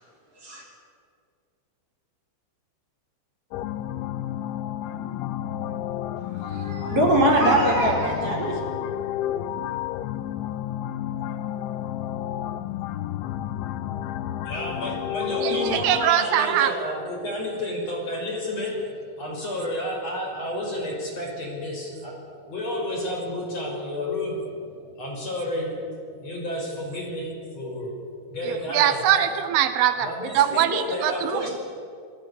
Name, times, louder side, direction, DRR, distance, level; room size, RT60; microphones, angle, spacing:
sound 1, 3.5-16.1, left 11 dB, 80° left, 3.2 m, -31 dB
voice 1, 6.3-8.6, right 1 dB, 30° right, -1 dB, 5.0 m, -22 dB
voice 2, 14.4-29.3 30.0-31.5, left 1 dB, 35° left, 0 dB, 6.4 m, -31 dB
voice 3, 15.4-16.9 28.4-31.5, right 10 dB, 85° right, 10 dB, 3.8 m, -23 dB
29.5 x 17.5 x 9.8 m, 2.3 s
omnidirectional pair, 5.6 m